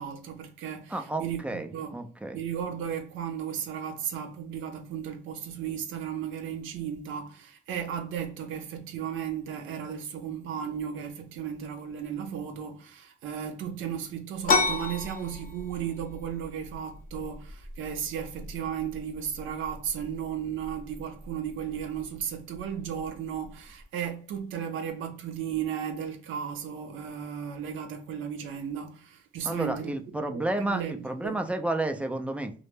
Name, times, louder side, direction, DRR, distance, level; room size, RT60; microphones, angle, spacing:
voice 1, 0.0-1.9 2.3-29.9 30.3-31.4, right 8 dB, 80° right, 0.4 m, -35 dB
voice 2, 0.9-2.4 29.4-32.5, right 2 dB, 5° right, 0.4 m, -31 dB
sound 1, 14.4-23.8, left 3 dB, 45° left, 0.6 m, -34 dB
2.1 x 2.1 x 3.1 m
cardioid pair, 90°, 20 cm